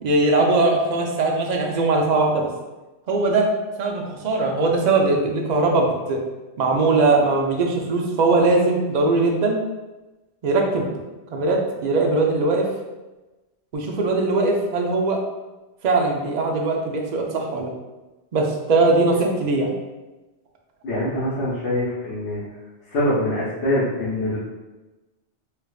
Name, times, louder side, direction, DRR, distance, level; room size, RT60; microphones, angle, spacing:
voice 1, 0.0-2.5 3.1-3.5 3.8-6.2 6.6-9.6 10.4-10.9 11.3-12.7 13.7-15.2 15.8-17.7 18.3-19.7, right 3 dB, 50° right, 1 dB, 0.5 m, -20 dB
voice 2, 20.8-22.4 22.9-24.4, left 1 dB, 80° left, -10 dB, 1.1 m, -24 dB
4.6 x 2.4 x 2.3 m, 1.1 s
omnidirectional pair, 1.2 m